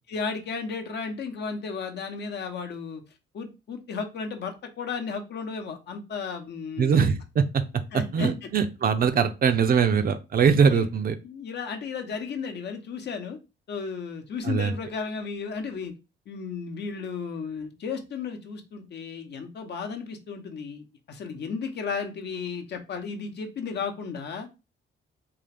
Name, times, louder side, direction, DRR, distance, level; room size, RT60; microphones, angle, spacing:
voice 1, 0.1-3.0 3.3-7.1 7.9-8.3 10.7-10.9 11.2-13.4 13.7-15.9 16.3-24.5, left 5 dB, 60° left, 5 dB, 0.8 m, -34 dB
voice 2, 6.8-7.6 8.1-11.2 14.4-14.7, right 6 dB, 50° right, 9 dB, 0.5 m, -22 dB
3.8 x 2.4 x 3.4 m, 0.27 s
cardioid pair, 90°, 20 cm